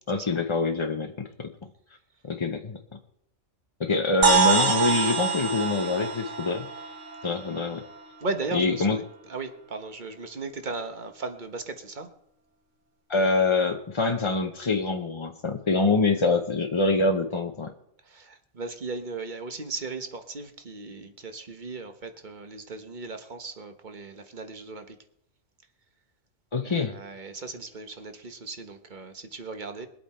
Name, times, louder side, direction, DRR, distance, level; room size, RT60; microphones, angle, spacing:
voice 1, 0.1-1.5 2.2-2.8 3.8-6.7 7.2-7.8 8.5-9.0 13.1-17.7 26.5-26.9, left 3 dB, 30° left, 4 dB, 0.6 m, -25 dB
sound 1, 4.2-8.0, right 5 dB, 70° right, 1.4 m, -25 dB
voice 2, 8.2-12.1 18.0-25.0 26.6-29.9, right 3 dB, 40° right, 7 dB, 1.4 m, -37 dB
21.5 x 8.4 x 4.4 m, 0.76 s
omnidirectional pair, 1.3 m